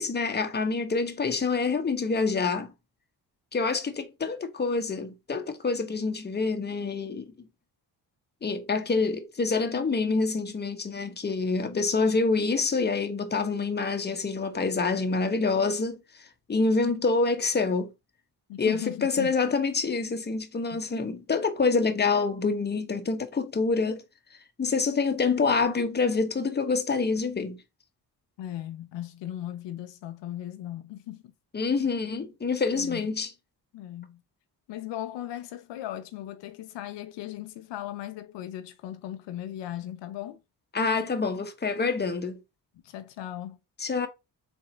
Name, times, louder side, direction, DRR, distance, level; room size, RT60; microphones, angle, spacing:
voice 1, 0.0-2.7 3.5-7.3 8.4-17.9 18.6-24.0 24.6-27.6 31.5-33.3 40.7-42.4 43.8-44.1, left 4 dB, 25° left, 0.8 m, -27 dB
voice 2, 18.5-19.3 20.7-20.8 28.4-31.3 31.8-32.0 32.7-33.1 33.7-34.2 34.7-40.4 42.8-43.6, left 12 dB, 85° left, 0.6 m, -37 dB
3.9 x 2.6 x 4.2 m
cardioid pair, 65°, 42 cm